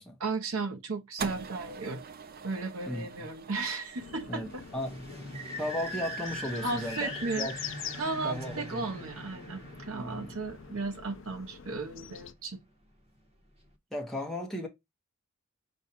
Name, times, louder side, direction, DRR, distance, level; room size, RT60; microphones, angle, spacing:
voice 1, 0.2-2.1 2.4-4.6 6.6-7.5 7.9-12.6, right 3 dB, 75° right, 0.9 m, -35 dB
sound 1, 1.2-7.5, right 5 dB, 45° right, 0.5 m, -45 dB
voice 2, 2.9-3.3 4.3-5.2 5.6-7.6 8.2-8.8 9.9-10.4 13.9-14.7, left 1 dB, ahead, 0.8 m, -36 dB
sound 2, 4.0-12.3, left 9 dB, 60° left, 0.5 m, -45 dB
sound 3, 4.5-11.8, equal, 30° right, 1.0 m, -42 dB
5.2 x 2.3 x 4.2 m
head